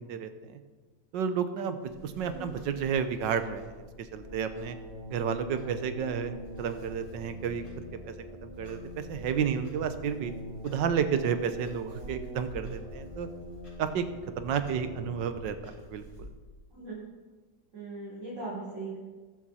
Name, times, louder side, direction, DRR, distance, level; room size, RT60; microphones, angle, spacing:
voice 1, 0.1-0.6 1.1-4.8 5.1-7.6 8.0-8.1 8.4-10.3 10.6-13.3 13.8-14.0 14.4-16.0, right 7 dB, 85° right, 9 dB, 1.6 m, -31 dB
Clock, 1.8-16.3, equal, 60° left, 4.4 m, -49 dB
sound 1, 4.1-15.4, left 1 dB, 25° right, 1.8 m, -44 dB
voice 2, 16.7-17.0 17.7-19.0, right 3 dB, 40° right, -9 dB, 4.1 m, -39 dB
21.0 x 7.5 x 4.2 m, 1.4 s
omnidirectional pair, 1.9 m